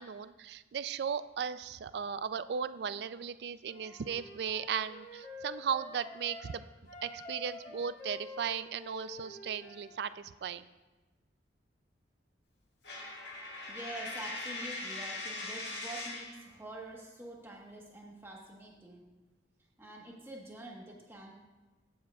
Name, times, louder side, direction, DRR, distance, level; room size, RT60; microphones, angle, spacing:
voice 1, 0.0-6.6 7.0-10.7, right 7 dB, 65° right, 14 dB, 0.3 m, -36 dB
Wind instrument woodwind instrument, 3.6-6.6 6.9-10.0, left 2 dB, 45° left, 1.3 m, -48 dB
Coin (dropping), 12.8-16.4, left 2 dB, 70° left, 1.7 m, -40 dB
voice 2, 13.5-19.1 19.8-21.3, right 2 dB, 15° right, -1 dB, 1.2 m, -46 dB
15.5 x 7.2 x 2.3 m, 1.2 s
head